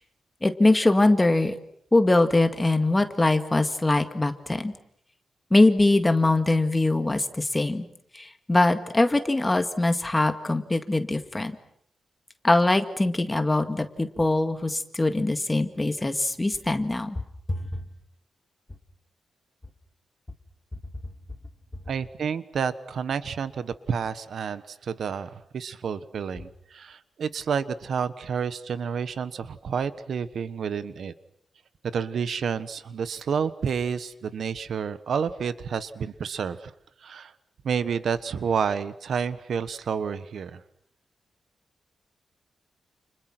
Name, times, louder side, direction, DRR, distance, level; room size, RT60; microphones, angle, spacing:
voice 1, 0.4-1.5 1.9-4.7 5.5-7.9 8.1-11.5 12.4-17.2 17.5-17.6, left 2 dB, 15° left, 8 dB, 1.9 m, -22 dB
voice 2, 21.9-31.1 31.9-36.7 37.0-37.3 37.6-40.6, right 6 dB, 65° right, 14 dB, 1.2 m, -30 dB
29.5 x 29.5 x 6.1 m, 0.69 s
wide cardioid pair, 160°, 0 cm